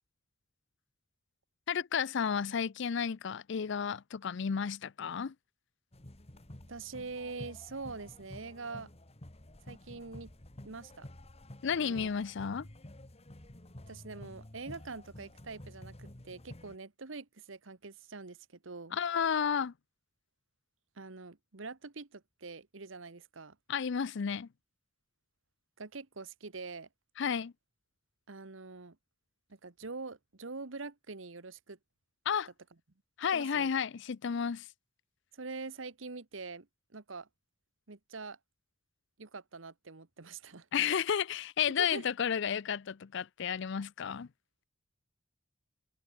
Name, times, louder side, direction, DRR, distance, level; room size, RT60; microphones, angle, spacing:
voice 1, 1.7-5.3 11.6-12.7 18.9-19.7 23.7-24.5 27.2-27.5 32.3-32.5 33.2-34.7 40.7-44.3, left 7 dB, 65° left, 0.5 m, -32 dB
sound 1, 5.9-16.8, left 1 dB, 30° left, 1.7 m, -51 dB
voice 2, 6.7-8.9 9.6-10.3 10.6-11.1 11.7-12.1 13.9-19.0 20.9-23.6 25.8-26.9 28.3-29.0 29.5-31.8 33.3-33.7 35.3-36.7 36.9-37.3 37.9-38.4 39.2-40.7 41.8-42.1, right 3 dB, 75° right, 1.3 m, -44 dB
head